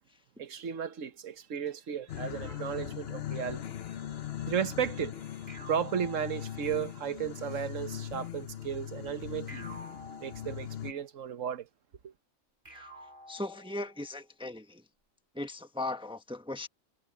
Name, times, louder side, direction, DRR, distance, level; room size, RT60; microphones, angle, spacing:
voice 1, 0.4-4.0 4.4-9.7 10.2-11.7 12.0-12.1, right 8 dB, 70° right, 1.4 m, -35 dB
sound 1, 2.1-10.9, left 11 dB, 55° left, 0.9 m, -40 dB
sound 2, 5.5-7.1 9.5-11.1 12.6-14.2, right 1 dB, 40° right, 3.6 m, -50 dB
voice 2, 13.3-14.8 15.3-16.7, left 2 dB, 5° right, 1.1 m, -38 dB
omnidirectional pair, 1.4 m